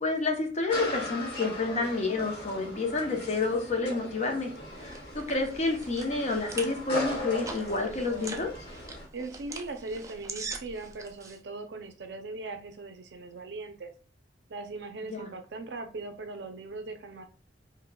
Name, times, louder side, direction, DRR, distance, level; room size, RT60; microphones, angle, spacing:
voice 1, 0.0-4.5 4.8-8.5 15.1-15.3, left 3 dB, 40° left, 3 dB, 0.7 m, -29 dB
sound 1, 0.7-9.1, left 1 dB, 60° left, 1.2 m, -38 dB
sound 2, 4.3-11.4, right 4 dB, 20° right, 0.3 m, -43 dB
voice 2, 9.1-13.9 14.5-17.3, right 3 dB, 70° right, 6 dB, 0.5 m, -39 dB
5.1 x 2.1 x 2.2 m, 0.37 s
head